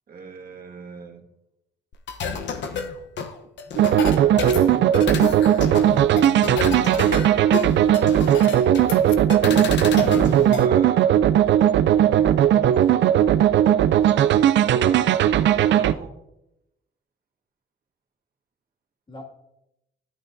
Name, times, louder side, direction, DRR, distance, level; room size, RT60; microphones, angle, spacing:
voice 1, 0.1-1.3 3.8-4.5 9.4-11.2 14.6-16.2, right 4 dB, 45° right, 1.5 m, -36 dB
sound 1, 1.9-10.7, left 6 dB, 65° left, 0.9 m, -30 dB
voice 2, 3.8-5.2 11.8-13.4 19.1-19.3, equal, 25° left, 2.1 m, -40 dB
sound 2, 3.8-15.9, right 11 dB, 65° right, 0.4 m, -18 dB
12.5 x 8.7 x 2.6 m
cardioid pair, 90°, 20 cm